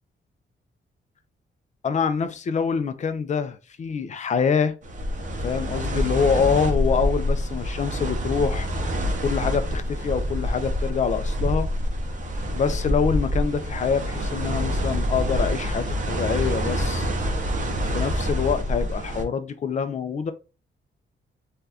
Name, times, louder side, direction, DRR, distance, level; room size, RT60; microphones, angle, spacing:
voice 1, 1.8-4.7 5.4-8.7 9.2-11.7 12.5-17.1 17.8-20.3, left 6 dB, 35° left, 0.4 m, -25 dB
sound 1, 4.8-19.2, equal, 40° right, 0.6 m, -26 dB
2.7 x 2.3 x 3.3 m
wide cardioid pair, 150°, 20 cm